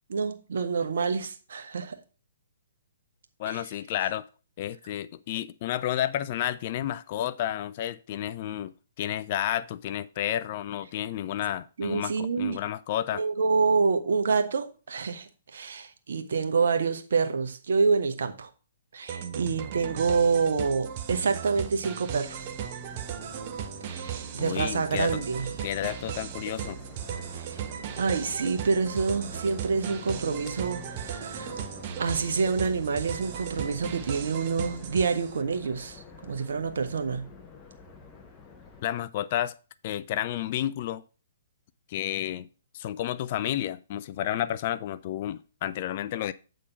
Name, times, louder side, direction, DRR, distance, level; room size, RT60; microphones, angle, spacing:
voice 1, 0.1-2.0 3.5-3.6 11.8-12.6 13.1-18.5 18.9-22.5 23.8-25.5 27.3-27.7 28.0-31.5 32.0-37.3, right 5 dB, 65° right, 1.0 m, -27 dB
voice 2, 3.4-4.2 4.6-13.2 24.4-25.2 25.6-26.8 38.8-39.5 39.8-41.0 41.9-42.5 42.7-46.3, left 12 dB, 45° left, 0.4 m, -31 dB
sound 1, 19.1-35.4, right 8 dB, 40° right, 0.7 m, -37 dB
sound 2, 22.2-38.9, left 5 dB, 20° left, 1.2 m, -48 dB
8.2 x 3.8 x 5.5 m
figure-of-eight pair, 125°, 0 cm